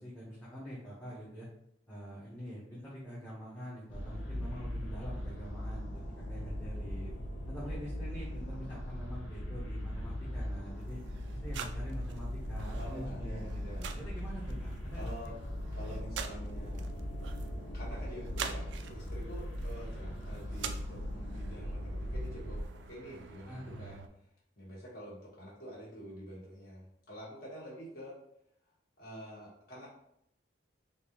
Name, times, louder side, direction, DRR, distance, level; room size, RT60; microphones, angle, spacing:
voice 1, 0.0-1.5 1.9-7.1 7.5-11.0 11.3-15.1 23.5-23.8, equal, 10° left, -9 dB, 0.8 m, -45 dB
sound 1, 3.9-22.6, equal, 75° left, 0.6 m, -39 dB
sound 2, 10.8-24.1, right 6 dB, 70° right, 0.3 m, -47 dB
voice 2, 12.7-13.9 14.9-15.4 15.7-16.9 17.7-24.0 24.6-28.2 29.0-29.9, equal, 55° left, -6 dB, 1.4 m, -47 dB
3.8 x 2.5 x 2.9 m, 0.75 s
head